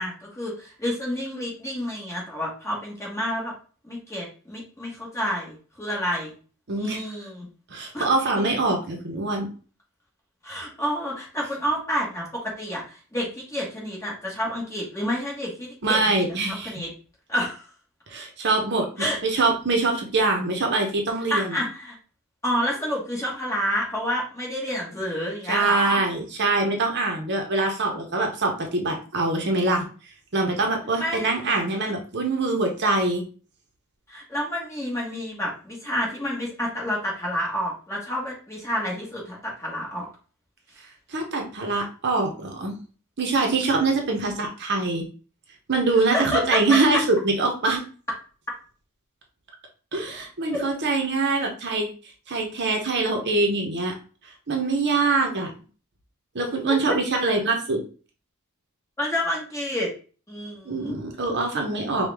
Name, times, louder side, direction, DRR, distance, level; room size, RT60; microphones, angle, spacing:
voice 1, 0.0-3.5 3.8-6.3 6.8-7.5 7.9-8.1 10.4-16.1 16.4-16.9 17.3-17.7 19.0-19.2 21.3-22.0 22.4-26.0 31.0-31.6 31.8-31.9 34.1-40.1 46.1-46.8 50.5-50.6 56.7-56.8 59.0-59.9 60.3-60.9, equal, 15° left, -3 dB, 1.4 m, -29 dB
voice 2, 6.7-7.0 7.7-9.5 15.8-16.7 18.1-18.9 19.2-21.6 25.5-29.8 30.3-33.2 41.1-42.7 43.2-45.0 45.7-47.8 49.9-51.9 52.3-53.9 54.5-55.5 56.3-57.8 60.6-62.1, right 3 dB, 50° right, 3 dB, 0.7 m, -24 dB
4.8 x 2.3 x 3.4 m, 0.38 s
head